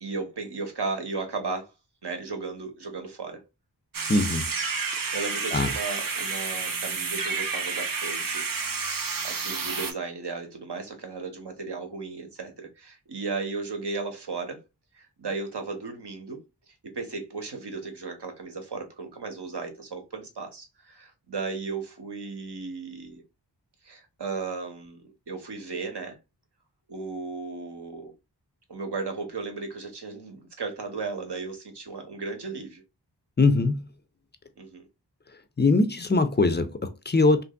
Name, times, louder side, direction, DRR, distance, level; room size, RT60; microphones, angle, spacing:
voice 1, 0.0-1.7 2.0-3.4 5.1-8.4 9.0-14.6 14.9-16.4 16.8-23.2 23.8-26.1 26.9-28.1 28.7-32.8 34.6-34.9, right 4 dB, 70° right, 0.9 m, -35 dB
sound 1, 3.9-9.9, right 4 dB, 50° right, 0.6 m, -30 dB
voice 2, 4.1-4.5 5.5-5.7 33.4-33.9 35.6-37.4, left 3 dB, 25° left, 0.4 m, -22 dB
2.8 x 2.6 x 2.2 m
wide cardioid pair, 45°, 43 cm